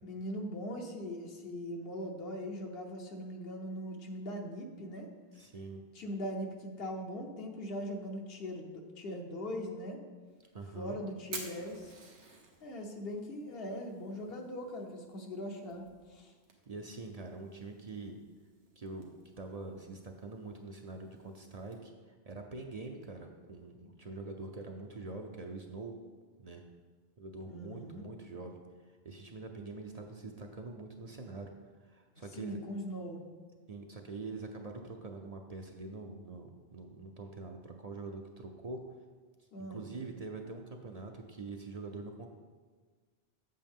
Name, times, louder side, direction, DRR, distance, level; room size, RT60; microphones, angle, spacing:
voice 1, 0.0-5.1 5.9-10.0 10.7-12.0 12.6-15.8 16.1-16.3 27.5-28.1 32.2-33.2 39.5-39.8, equal, 65° left, 2 dB, 1.1 m, -40 dB
voice 2, 5.3-5.8 10.5-11.0 16.7-18.2 18.8-19.1 19.4-25.9 26.4-26.6 27.2-28.6 28.8-31.5 31.8-32.6 33.7-38.8 39.4-42.3, right 3 dB, 45° right, 3 dB, 0.6 m, -44 dB
Fire, 10.3-21.8, right 4 dB, 90° right, 1.3 m, -53 dB
7.7 x 7.1 x 3.6 m, 1.5 s
omnidirectional pair, 1.1 m